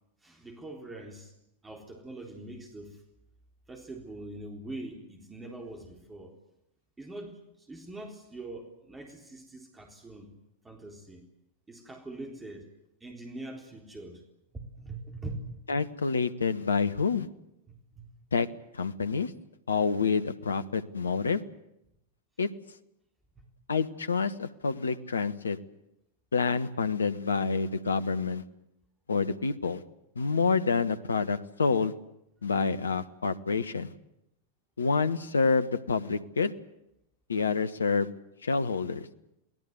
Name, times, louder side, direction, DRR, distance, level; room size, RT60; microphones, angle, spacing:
voice 1, 0.2-1.3 1.6-3.0 3.7-6.4 7.0-10.4 10.6-11.3 11.7-12.7 13.0-14.2 14.5-15.4 17.7-18.1 23.4-23.5, right 2 dB, 10° right, 2 dB, 3.8 m, -43 dB
voice 2, 15.7-17.3 18.3-18.5 18.7-19.3 19.7-21.4 22.4-22.5 23.7-25.6 26.3-28.4 29.1-29.8 30.1-31.9 32.4-33.9 34.8-36.5 37.3-38.1 38.4-39.1, left 4 dB, 75° left, 13 dB, 1.2 m, -28 dB
29.5 x 19.0 x 8.1 m, 0.84 s
figure-of-eight pair, 90°, 0 cm